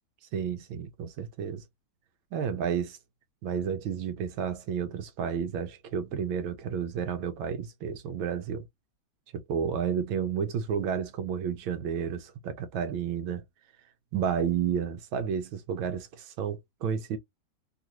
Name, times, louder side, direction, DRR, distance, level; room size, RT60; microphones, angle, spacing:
voice 1, 0.3-1.6 2.3-3.0 3.4-8.6 9.5-13.4 14.1-17.2, right 7 dB, 75° right, 1.4 m, -31 dB
3.4 x 2.5 x 2.8 m
omnidirectional pair, 2.3 m